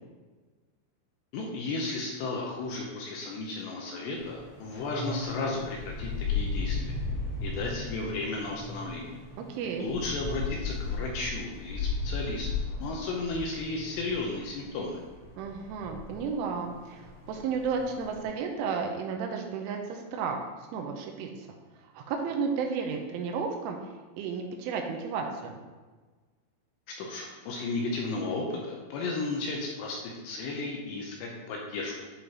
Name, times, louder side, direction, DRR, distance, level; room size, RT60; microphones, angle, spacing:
voice 1, 1.3-6.9 7.4-9.1 9.8-12.5 12.8-15.0 27.0-31.9, left 3 dB, 75° left, -1 dB, 2.7 m, -34 dB
sound 1, 4.1-18.2, left 4 dB, 55° left, 1.6 m, -36 dB
voice 2, 9.4-9.9 15.4-21.5 21.9-23.8 24.2-25.6, right 5 dB, 80° right, 3 dB, 3.2 m, -33 dB
11.0 x 5.1 x 2.9 m, 1.3 s
omnidirectional pair, 5.6 m